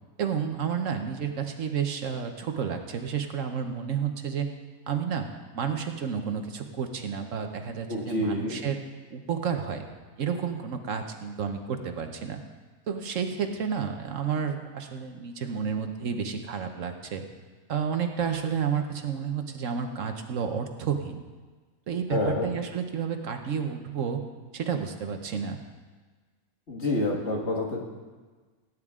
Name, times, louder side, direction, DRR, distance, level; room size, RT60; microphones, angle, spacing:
voice 1, 0.2-4.5 4.9-5.3 5.5-8.8 9.1-9.8 10.2-12.4 12.9-17.2 17.7-21.2 21.9-24.2 24.5-25.6, right 7 dB, 65° right, 6 dB, 1.2 m, -31 dB
voice 2, 7.9-8.6 22.1-22.5 26.7-27.8, left 2 dB, 50° left, -1 dB, 1.9 m, -28 dB
18.0 x 9.5 x 3.7 m, 1.4 s
omnidirectional pair, 1.5 m